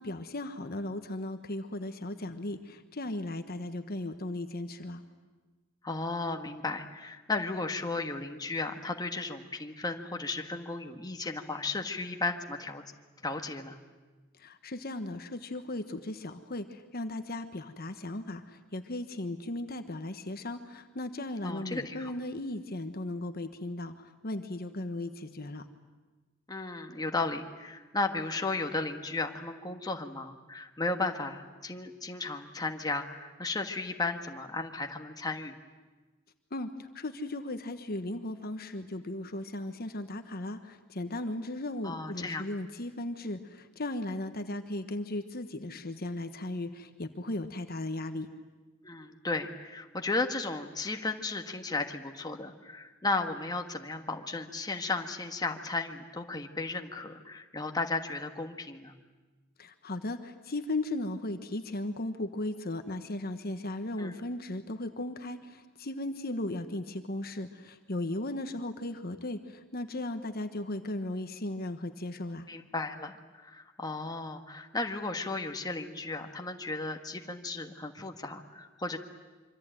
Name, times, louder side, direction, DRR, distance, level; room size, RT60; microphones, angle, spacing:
voice 1, 0.0-5.0 14.4-25.6 36.5-48.3 59.6-72.5, left 1 dB, 50° left, 8 dB, 1.3 m, -36 dB
voice 2, 5.8-12.8 13.2-13.8 21.4-22.1 26.5-35.5 41.8-42.4 48.8-59.0 64.0-64.2 72.5-79.0, left 3 dB, 20° left, 4 dB, 1.5 m, -34 dB
26.0 x 25.0 x 9.1 m, 1.3 s
head